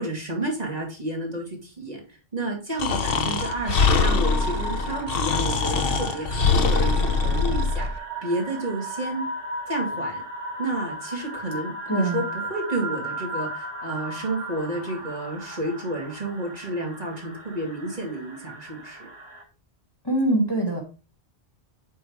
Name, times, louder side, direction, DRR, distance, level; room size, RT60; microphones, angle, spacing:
voice 1, 0.0-9.3 9.7-10.2 10.6-19.1, right 2 dB, 40° right, -1 dB, 2.4 m, -31 dB
Breathing, 2.8-7.9, left 5 dB, 60° left, 1.0 m, -23 dB
sound 1, 3.4-19.4, right 2 dB, 65° right, 1.8 m, -35 dB
voice 2, 11.9-12.2 20.0-20.8, right 1 dB, 20° left, -1 dB, 1.6 m, -23 dB
8.2 x 5.6 x 3.1 m, 0.34 s
omnidirectional pair, 1.1 m